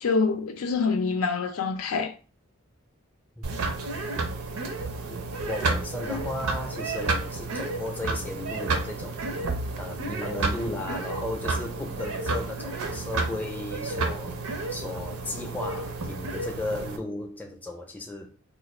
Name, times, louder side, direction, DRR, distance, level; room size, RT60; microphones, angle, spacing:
voice 1, 0.0-2.1, left 4 dB, 75° left, 0.5 m, -26 dB
sound 1, 3.4-17.0, right 3 dB, 85° right, 0.6 m, -31 dB
voice 2, 5.1-9.3 9.8-14.4 14.7-18.4, left 2 dB, 5° left, 0.5 m, -35 dB
2.5 x 2.4 x 4.1 m
head